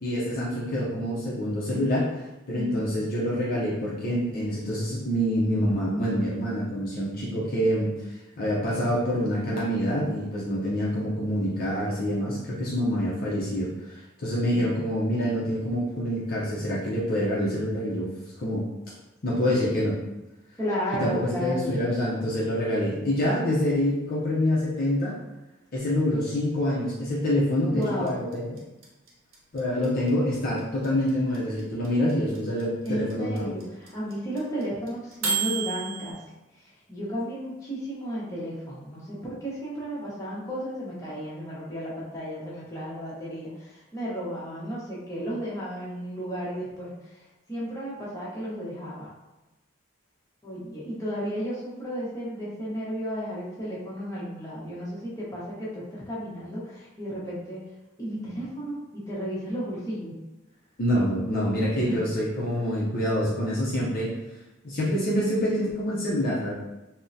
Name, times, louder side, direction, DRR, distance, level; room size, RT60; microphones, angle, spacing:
voice 1, 0.0-2.1 2.5-7.9 8.4-18.1 18.4-18.7 19.2-20.0 21.0-25.2 25.7-28.6 29.5-33.5 60.8-64.1 64.6-66.5, equal, 45° left, -6 dB, 0.6 m, -26 dB
voice 2, 2.5-3.1 20.6-21.8 27.7-28.1 32.8-36.2 36.6-47.2 47.5-49.1 50.4-57.7 58.0-60.1 61.6-62.0, equal, 15° left, -8 dB, 0.9 m, -33 dB
sound 1, 27.8-36.1, right 5 dB, 80° right, 0.7 m, -31 dB
3.5 x 2.1 x 2.6 m, 1.0 s
head